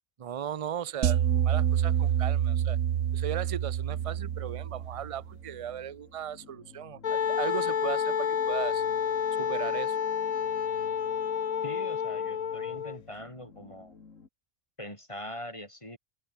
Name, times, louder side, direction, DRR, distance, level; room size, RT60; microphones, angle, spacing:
voice 1, 0.2-2.8 3.1-8.8 9.4-10.0, right 9 dB, 40° right, 0.5 m, -37 dB
sound 1, 1.0-5.3, right 10 dB, 70° right, 1.1 m, -27 dB
sound 2, 3.9-14.3, left 5 dB, 80° left, 2.5 m, -54 dB
Wind instrument woodwind instrument, 7.0-13.0, left 8 dB, 45° left, 0.5 m, -29 dB
voice 2, 11.6-14.0 14.8-16.0, left 1 dB, 25° left, 5.9 m, -42 dB
open air
omnidirectional pair, 1.3 m